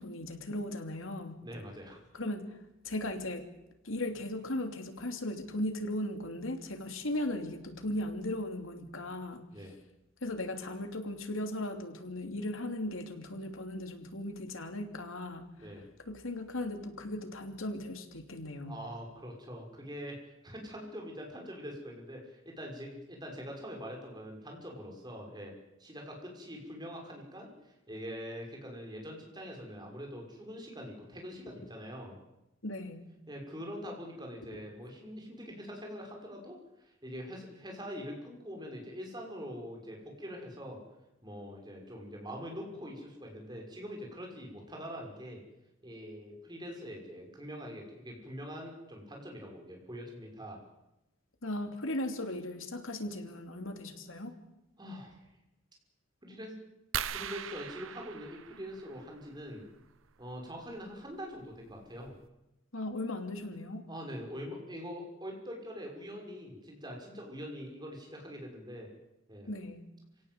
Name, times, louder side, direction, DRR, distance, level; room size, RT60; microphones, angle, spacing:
voice 1, 0.0-1.4 2.1-2.6 2.8-3.4 3.8-9.4 10.2-15.5 16.1-18.8 32.6-33.1 51.4-54.3 62.7-63.8 69.5-69.8, left 1 dB, 85° left, 6 dB, 3.0 m, -37 dB
voice 2, 1.4-2.0 9.5-9.7 15.6-15.8 18.7-20.2 20.4-25.5 25.8-32.2 33.3-40.8 41.2-45.4 45.8-50.6 54.8-55.2 56.2-56.6 57.1-59.6 60.2-62.1 63.9-68.9 69.3-69.5, equal, 20° right, 1 dB, 6.0 m, -44 dB
sound 1, 56.9-59.3 60.9-61.1 61.7-61.8 62.1-62.3, right 8 dB, 80° right, 0.9 m, -39 dB
27.0 x 17.5 x 8.1 m, 0.93 s
head